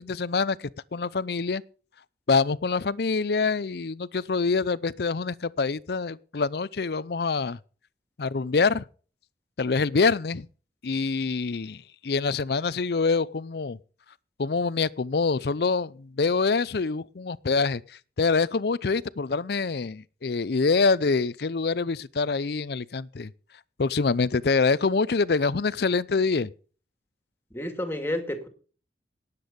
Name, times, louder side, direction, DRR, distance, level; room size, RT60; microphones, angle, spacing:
voice 1, 0.0-1.6 2.3-7.6 8.2-8.8 9.6-10.5 10.8-13.8 14.4-17.8 18.2-23.3 23.8-26.5, left 4 dB, 60° left, 0.6 m, -25 dB
voice 2, 27.5-28.5, left 1 dB, 15° left, 2.1 m, -30 dB
18.5 x 8.3 x 5.3 m
head